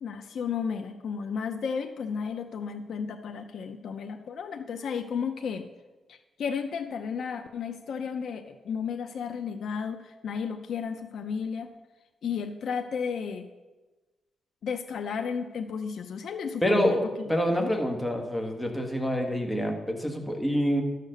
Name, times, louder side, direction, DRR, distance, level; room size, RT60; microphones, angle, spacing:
voice 1, 0.0-5.7 6.1-11.7 12.2-13.5 14.6-17.7, left 6 dB, 70° left, 6 dB, 0.6 m, -33 dB
voice 2, 16.6-20.8, equal, 10° left, 2 dB, 1.6 m, -27 dB
11.5 x 6.7 x 6.6 m, 1.2 s
cardioid pair, 105°, 0 cm